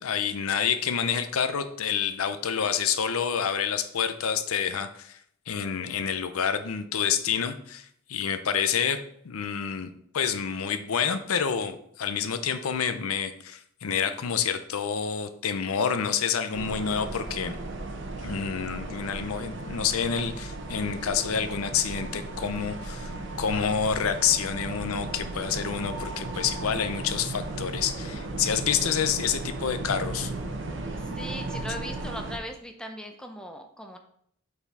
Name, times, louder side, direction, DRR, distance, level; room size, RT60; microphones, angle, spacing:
voice 1, 0.0-5.2 5.5-17.6 18.2-23.1 23.4-30.3, left 7 dB, 80° left, 10 dB, 0.5 m, -28 dB
sound 1, 16.5-32.4, right 2 dB, 55° right, 0.7 m, -35 dB
voice 2, 30.9-34.0, equal, 5° left, 4 dB, 0.5 m, -39 dB
5.7 x 4.1 x 4.1 m, 0.68 s
head